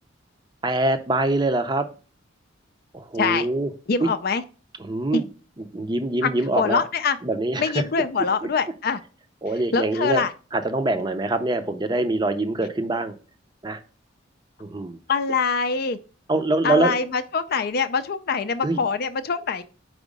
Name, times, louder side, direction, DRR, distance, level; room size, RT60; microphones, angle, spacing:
voice 1, 0.6-1.9 2.9-3.7 4.0-4.1 4.8-5.3 5.6-6.8 7.2-7.8 9.4-10.3 10.5-13.1 13.6-13.8 14.6-15.0 16.3-16.9 18.6-18.8, right 2 dB, 20° right, 9 dB, 0.6 m, -24 dB
voice 2, 3.9-4.4 5.1-5.2 6.2-6.3 6.6-7.2 7.6-9.0 9.7-10.3 15.1-16.0 16.6-19.6, left 5 dB, 50° left, 10 dB, 0.5 m, -24 dB
4.9 x 4.5 x 5.2 m, 0.36 s
head